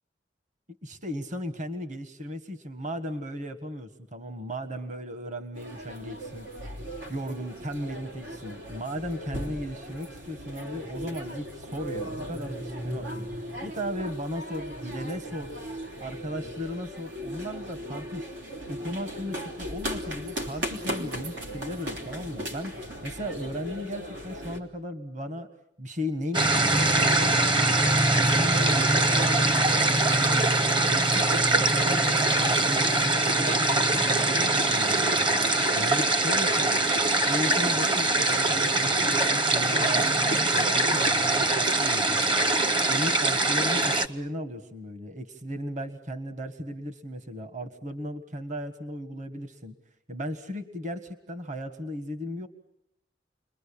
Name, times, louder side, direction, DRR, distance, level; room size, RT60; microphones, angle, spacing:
voice 1, 0.8-6.5 7.1-13.3 13.6-15.6 16.0-18.3 18.7-22.7 23.0-25.5 25.8-27.6 28.1-35.1 35.7-36.9 37.2-42.2 42.9-49.7 50.1-52.5, equal, 45° right, 9 dB, 1.6 m, -36 dB
sound 1, 5.5-24.6, equal, 90° right, 3.5 m, -37 dB
sound 2, 26.3-44.1, right 2 dB, 25° right, 1.0 m, -23 dB
sound 3, 32.3-33.9 34.4-34.7 35.3-37.0 38.3-40.7, equal, 75° right, 6.8 m, -54 dB
30.0 x 22.5 x 8.6 m, 0.73 s
head